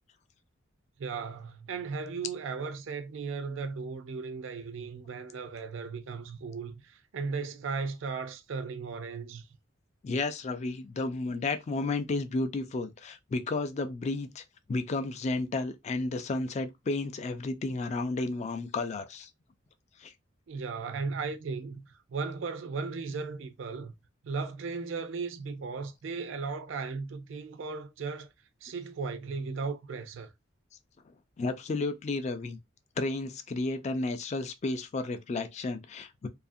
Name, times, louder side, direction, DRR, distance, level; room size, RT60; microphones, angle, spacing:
voice 1, 1.0-9.5 20.5-23.9 24.2-28.3 28.6-30.3, right 4 dB, 70° right, 0.4 m, -36 dB
voice 2, 10.0-14.4 14.7-19.3 20.0-20.1 31.4-32.6 33.0-36.3, left 3 dB, 35° left, 0.3 m, -32 dB
2.7 x 2.4 x 2.5 m
head